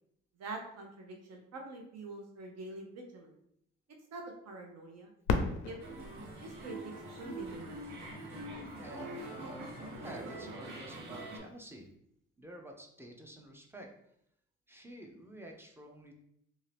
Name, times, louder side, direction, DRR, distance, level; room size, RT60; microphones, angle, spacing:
voice 1, 0.4-3.4 4.1-5.1 5.6-5.9 6.4-6.9 7.2-7.9, right 2 dB, 55° right, 2 dB, 0.8 m, -45 dB
Fireworks, 5.2-8.0 8.7-8.8 9.5-9.9 11.8-12.0, left 4 dB, 80° left, 0.5 m, -36 dB
sound 1, 5.8-11.4, right 1 dB, 90° right, 1.1 m, -44 dB
voice 2, 8.8-11.9 12.4-13.9 14.7-16.1, right 1 dB, 10° right, 1 dB, 0.5 m, -50 dB
2.7 x 2.5 x 3.3 m, 0.72 s
cardioid pair, 90°, 30 cm